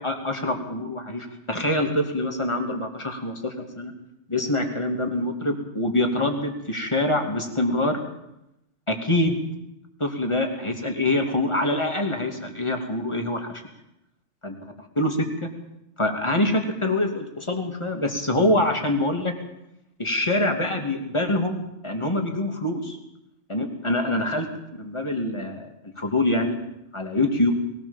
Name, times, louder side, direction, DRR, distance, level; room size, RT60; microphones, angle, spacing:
voice 1, 0.0-3.9 4.3-8.0 8.9-9.4 10.0-13.6 14.4-14.5 15.0-15.5 16.0-19.3 20.0-23.0 23.5-24.5 24.8-25.7 26.0-26.6 26.9-27.5, left 1 dB, 25° left, 4 dB, 2.6 m, -25 dB
21.5 x 17.5 x 7.2 m, 0.85 s
omnidirectional pair, 1.2 m